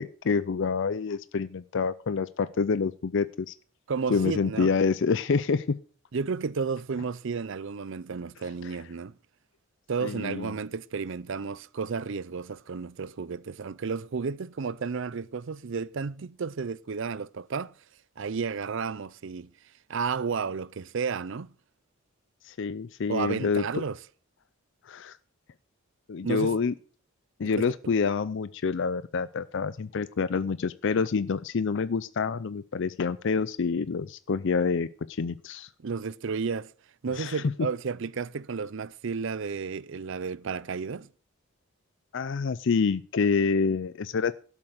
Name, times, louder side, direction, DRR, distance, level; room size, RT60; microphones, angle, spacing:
voice 1, 0.0-3.5 4.1-5.7 10.0-10.5 22.4-23.8 24.9-25.2 26.1-26.7 27.4-35.7 37.2-37.4 42.1-44.4, left 5 dB, 60° left, 0.5 m, -27 dB
voice 2, 3.9-4.7 6.1-9.2 9.9-17.7 18.2-19.5 19.9-21.5 23.1-24.0 26.2-26.6 27.6-27.7 35.8-36.7 37.0-41.1, right 5 dB, 60° right, 0.5 m, -32 dB
12.5 x 7.3 x 6.5 m
head